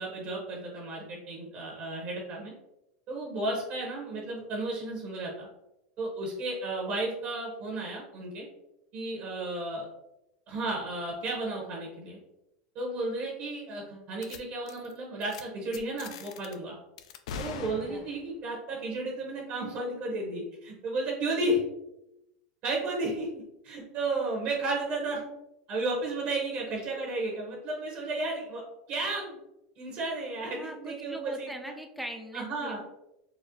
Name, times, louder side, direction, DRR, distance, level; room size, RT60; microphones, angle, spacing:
voice 1, 0.0-2.5 3.1-5.5 6.0-8.5 8.9-9.9 10.5-12.2 12.7-16.7 17.4-21.6 22.6-25.2 25.7-28.6 28.9-29.4 29.8-31.7 32.3-32.8, right 2 dB, 50° right, -2 dB, 0.9 m, -33 dB
sound 1, 14.2-14.4 14.7-14.9 15.2-15.4 15.7-16.5 17.0-18.3, left 6 dB, 75° left, 0.3 m, -41 dB
voice 2, 30.5-32.8, equal, ahead, 3 dB, 0.4 m, -40 dB
4.1 x 2.0 x 2.7 m, 0.89 s
supercardioid pair, 120°, 3 cm